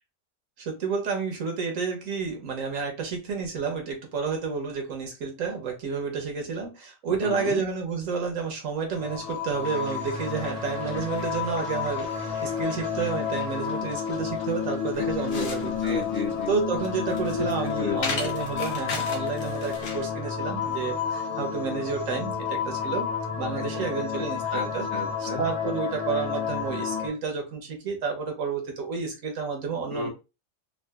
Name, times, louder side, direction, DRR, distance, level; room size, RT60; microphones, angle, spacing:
voice 1, 0.6-16.0 16.5-23.1 23.4-24.9 25.2-30.1, right 5 dB, 75° right, 3 dB, 1.3 m, -30 dB
voice 2, 7.2-7.7 15.0-16.5 17.3-18.3 23.6-24.2 24.5-25.4 29.8-30.1, left 4 dB, 20° left, -1 dB, 0.7 m, -34 dB
sound 1, 8.9-27.1, left 7 dB, 60° left, 1.3 m, -31 dB
sound 2, 9.6-14.3, right 1 dB, 35° right, 0.6 m, -49 dB
sound 3, 14.9-20.1, left 3 dB, 80° left, 1.2 m, -36 dB
3.6 x 2.4 x 2.3 m, 0.28 s
omnidirectional pair, 1.4 m